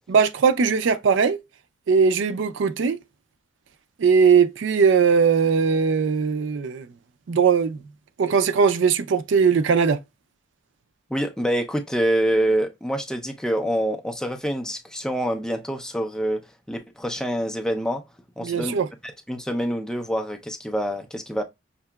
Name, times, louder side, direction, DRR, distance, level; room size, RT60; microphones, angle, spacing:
voice 1, 0.1-1.4 1.9-3.0 4.0-6.9 7.3-7.8 8.2-10.0 18.4-18.9, right 6 dB, 65° right, 0.4 m, -19 dB
voice 2, 11.1-16.4 16.7-18.0 18.4-18.7 19.3-21.4, equal, 5° left, 0.5 m, -26 dB
5.8 x 2.8 x 2.2 m
head